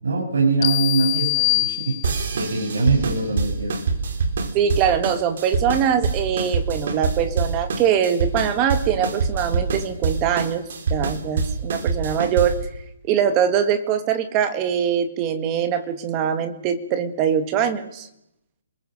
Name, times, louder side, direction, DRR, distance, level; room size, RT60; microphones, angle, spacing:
voice 1, 0.0-3.7, right 3 dB, 75° right, -1 dB, 7.1 m, -23 dB
sound 1, 0.6-2.4, left 21 dB, 20° left, 1.3 m, -24 dB
sound 2, 2.0-12.7, right 4 dB, 45° right, 3.4 m, -25 dB
voice 2, 4.5-10.6 10.9-12.6 13.1-18.1, right 8 dB, 15° right, 9 dB, 1.7 m, -22 dB
29.0 x 21.5 x 6.6 m, 0.81 s
hypercardioid pair, 175°, 0 cm